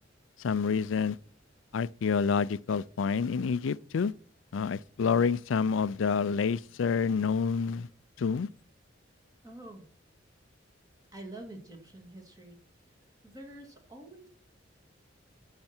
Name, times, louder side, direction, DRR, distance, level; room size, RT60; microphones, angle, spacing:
voice 1, 0.4-1.2 1.7-4.1 4.5-7.9 8.2-8.5, left 5 dB, 85° left, 0.4 m, -28 dB
voice 2, 9.4-9.9 11.1-12.6 13.2-14.3, right 1 dB, 20° right, 2.1 m, -46 dB
12.0 x 5.7 x 4.4 m
head